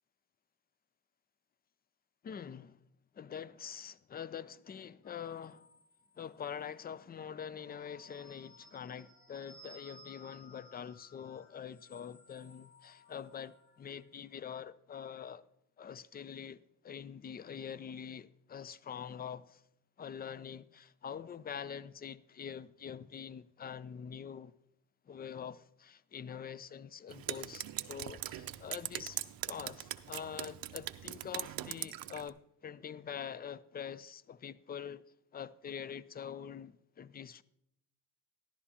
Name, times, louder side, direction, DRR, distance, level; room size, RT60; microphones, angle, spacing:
voice 1, 2.2-2.8 3.1-5.6 6.2-15.4 15.8-19.6 20.0-24.5 25.1-29.2 29.5-35.0 35.3-37.4, left 8 dB, 25° left, 0.4 m, -45 dB
sound 1, 5.0-6.5 7.4-14.0, left 1 dB, 55° left, 4.3 m, -59 dB
Drip, 27.1-32.3, right 13 dB, 55° right, 0.6 m, -41 dB
13.5 x 11.0 x 2.8 m
cardioid pair, 90°, 42 cm